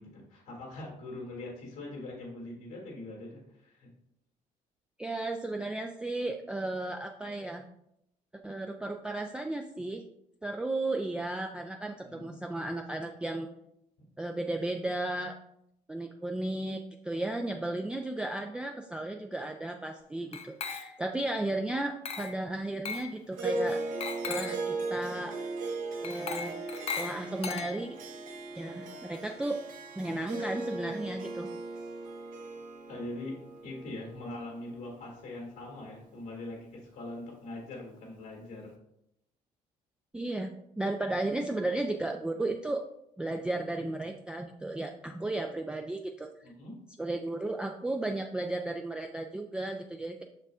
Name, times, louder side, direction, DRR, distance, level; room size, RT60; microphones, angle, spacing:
voice 1, 0.0-3.9 12.0-12.4 32.9-33.4 33.6-38.7 46.4-46.8, left 2 dB, 85° left, -2 dB, 2.0 m, -42 dB
voice 2, 5.0-7.7 8.4-10.0 10.4-13.5 14.2-15.4 15.9-23.8 24.2-25.4 26.0-26.5 27.0-28.0 28.6-29.6 30.0-31.5 40.1-42.9 43.2-46.5 47.0-50.2, right 2 dB, 5° right, 3 dB, 0.3 m, -34 dB
Glass, 20.3-21.2 22.0-22.4 22.8-23.1 24.0-24.7 26.0-28.1, left 6 dB, 45° left, 0.6 m, -38 dB
Harp, 23.3-35.9, right 2 dB, 70° right, 1.0 m, -38 dB
6.7 x 6.0 x 2.4 m, 0.78 s
cardioid pair, 115°, 15 cm